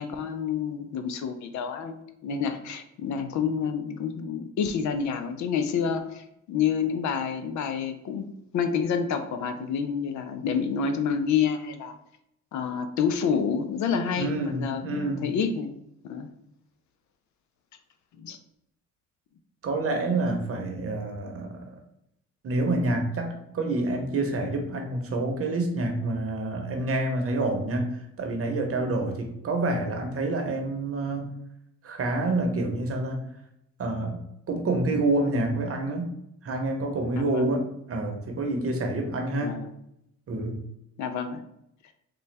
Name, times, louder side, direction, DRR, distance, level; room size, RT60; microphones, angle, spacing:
voice 1, 0.0-12.0 12.5-15.7 16.0-16.3 18.2-18.4 37.2-37.5 39.4-39.7 41.0-41.4, left 6 dB, 70° left, 8 dB, 0.5 m, -28 dB
voice 2, 14.2-15.3 19.6-21.8 22.4-31.3 31.8-33.2 33.8-34.2 34.5-36.1 36.4-39.5 40.3-40.6, right 2 dB, 50° right, 3 dB, 0.8 m, -28 dB
3.9 x 2.2 x 3.3 m, 0.77 s
cardioid pair, 90°, 30 cm